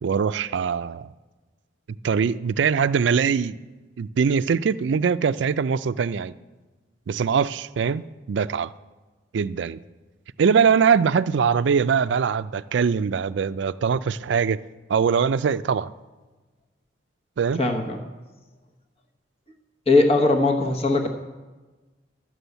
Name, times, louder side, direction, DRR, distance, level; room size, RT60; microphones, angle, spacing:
voice 1, 0.0-1.1 2.0-3.6 4.0-6.3 7.1-8.7 9.3-9.8 10.4-14.6 14.9-15.9 17.4-17.6, right 6 dB, 70° right, 15 dB, 0.4 m, -22 dB
voice 2, 17.6-18.0 19.9-21.1, left 2 dB, 30° left, 2 dB, 1.0 m, -19 dB
13.0 x 6.2 x 8.1 m, 1.2 s
head